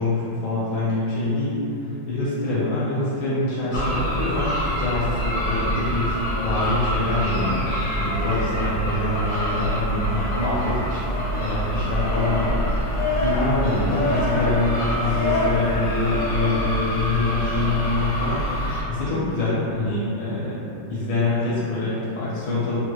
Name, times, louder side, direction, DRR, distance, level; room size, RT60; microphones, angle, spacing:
voice 1, 0.0-1.6 1.8-6.2 6.4-12.6 13.2-20.6 20.9-22.8, left 2 dB, 80° left, -9 dB, 1.3 m, -25 dB
sound 1, 3.7-18.8, equal, 65° left, 0.8 m, -25 dB
4.2 x 2.3 x 2.2 m, 2.8 s
omnidirectional pair, 2.1 m